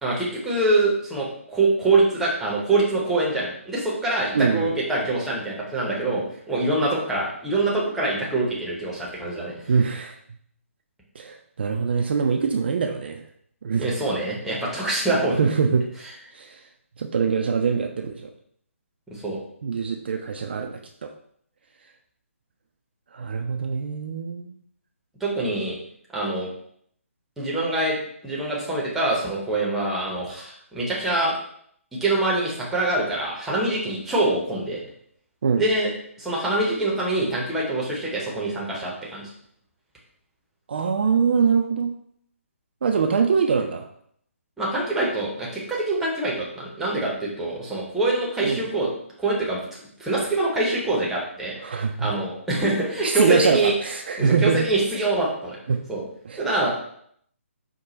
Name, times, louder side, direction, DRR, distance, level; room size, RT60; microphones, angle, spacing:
voice 1, 0.0-9.7 13.8-15.5 19.1-19.4 25.2-25.8 26.1-26.5 27.4-28.0 28.2-31.3 32.0-34.8 35.6-35.9 36.2-39.3 44.6-48.9 49.2-49.6 50.0-51.5 52.0-53.7 54.2-55.6 55.9-56.0 56.4-56.7, right 2 dB, 5° right, -4 dB, 0.7 m, -24 dB
voice 2, 4.3-4.7 9.7-10.2 11.2-13.2 13.6-13.9 15.4-15.9 16.3-16.6 17.0-18.3 19.6-21.1 23.1-24.5 35.4-35.6 40.7-41.9 42.8-43.8 48.4-48.6 51.6-52.1 53.0-54.7 55.7-55.8 56.3-56.4, right 5 dB, 45° right, 3 dB, 0.3 m, -23 dB
4.7 x 2.1 x 3.9 m, 0.66 s
figure-of-eight pair, 140°, 8 cm